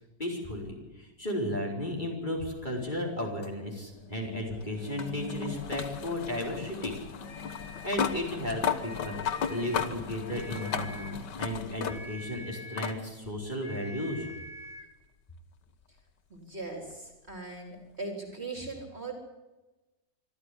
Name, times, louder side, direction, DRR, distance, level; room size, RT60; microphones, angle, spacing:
voice 1, 0.2-7.0 7.8-14.3, left 1 dB, 25° left, -1 dB, 4.8 m, -34 dB
sound 1, 3.4-12.3 12.8-13.0 14.3-14.4 17.3-17.4, left 7 dB, 70° left, 1.9 m, -35 dB
sound 2, 7.2-8.3 8.7-10.0 10.3-11.2 11.8-13.1 13.6-14.9, left 1 dB, 40° left, 2.4 m, -46 dB
voice 2, 16.3-19.1, right 3 dB, 35° right, 2 dB, 4.1 m, -39 dB
25.5 x 14.0 x 9.9 m, 1.1 s
omnidirectional pair, 2.0 m